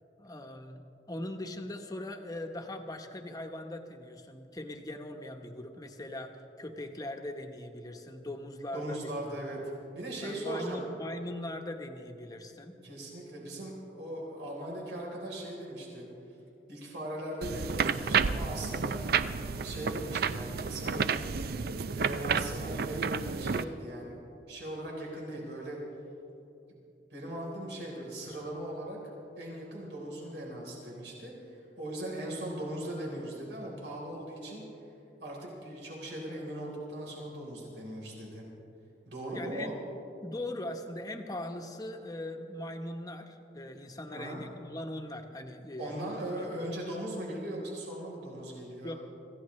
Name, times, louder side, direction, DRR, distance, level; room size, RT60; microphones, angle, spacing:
voice 1, 0.2-0.8 1.1-9.1 10.2-12.7 39.3-39.8 40.2-46.6 48.8-48.9, left 1 dB, 20° left, 4 dB, 1.1 m, -40 dB
voice 2, 8.7-9.6 9.9-10.8 12.8-16.1 16.7-19.0 19.6-21.1 21.6-24.2 24.5-25.8 26.7-29.0 29.4-34.6 35.2-38.4 39.1-39.7 44.1-44.4 45.8-49.0, right 1 dB, 85° right, -3 dB, 3.8 m, -39 dB
sound 1, 17.4-23.6, right 5 dB, 60° right, 0.5 m, -31 dB
26.0 x 15.5 x 3.2 m, 2.9 s
head